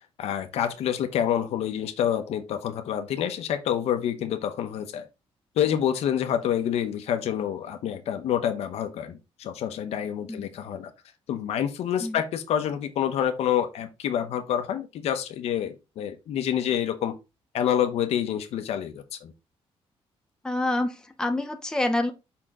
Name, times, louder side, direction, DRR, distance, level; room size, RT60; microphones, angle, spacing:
voice 1, 0.2-5.1 5.6-10.9 11.3-17.1 17.5-19.3, left 9 dB, 85° left, 1.0 m, -27 dB
voice 2, 20.4-22.1, left 1 dB, 5° left, 0.8 m, -27 dB
5.7 x 4.5 x 3.7 m
cardioid pair, 140°, 10 cm